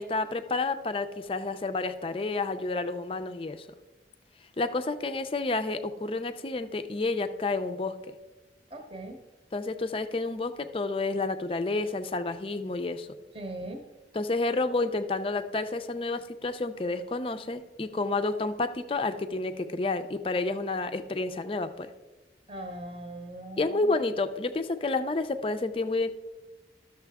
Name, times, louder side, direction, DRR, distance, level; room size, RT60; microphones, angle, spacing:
voice 1, 0.0-3.7 4.6-8.0 9.5-13.1 14.1-21.9 23.6-26.1, left 3 dB, 30° left, 9 dB, 0.4 m, -30 dB
voice 2, 8.7-9.2 13.3-13.8 22.5-24.1, right 1 dB, 30° right, 4 dB, 0.9 m, -40 dB
13.0 x 6.6 x 3.5 m, 1.2 s
head